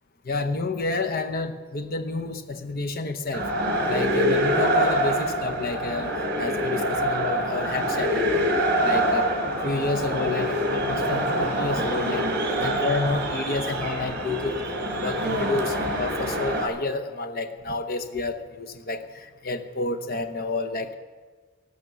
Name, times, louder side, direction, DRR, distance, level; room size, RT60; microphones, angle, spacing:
voice 1, 0.2-3.5 3.8-6.1 6.4-8.5 8.8-9.3 9.6-12.3 12.6-14.6 14.9-21.0, left 3 dB, 45° left, 6 dB, 0.9 m, -30 dB
sound 1, 3.3-16.7, equal, 55° right, 3.9 m, -25 dB
16.5 x 12.0 x 6.9 m, 1.4 s
head